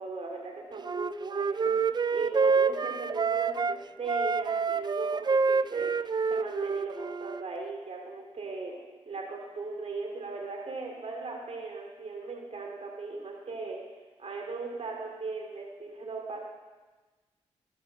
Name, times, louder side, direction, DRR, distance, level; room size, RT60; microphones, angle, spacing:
voice 1, 0.0-5.9 6.3-8.8 9.1-13.8 14.2-16.4, right 3 dB, 60° right, 0 dB, 3.3 m, -38 dB
Wind instrument woodwind instrument, 0.8-3.8 4.1-7.4, right 5 dB, 35° right, 0.4 m, -27 dB
15.0 x 12.0 x 3.7 m, 1.3 s
cardioid pair, 50°, 13 cm